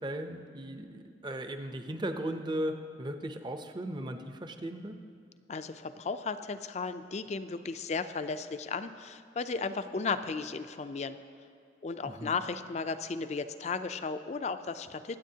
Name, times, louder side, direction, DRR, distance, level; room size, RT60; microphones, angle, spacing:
voice 1, 0.0-5.0 12.0-12.4, right 1 dB, 25° right, 7 dB, 0.6 m, -37 dB
voice 2, 5.5-11.2 11.8-15.2, left 4 dB, 40° left, 11 dB, 0.4 m, -35 dB
24.0 x 8.4 x 2.8 m, 2.5 s
head